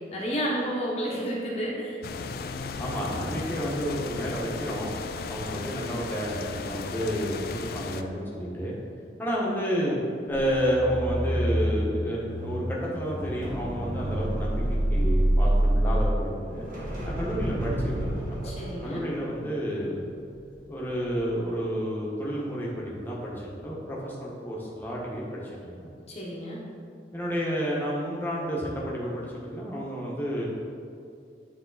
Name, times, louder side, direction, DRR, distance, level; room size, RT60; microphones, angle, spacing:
voice 1, 0.1-2.0 18.3-19.0 26.1-26.6, equal, 35° left, -5 dB, 1.1 m, -31 dB
sound 1, 2.0-8.0, left 4 dB, 55° left, 0.3 m, -36 dB
voice 2, 2.8-4.9 5.3-8.7 9.2-10.0 10.3-16.7 17.0-18.5 18.8-20.1 20.7-25.9 27.1-30.5, equal, 10° left, -5 dB, 1.2 m, -30 dB
sound 2, 10.3-20.6 20.9-21.2, right 1 dB, 45° right, 1.4 m, -28 dB
9.3 x 3.6 x 4.0 m, 2.4 s
head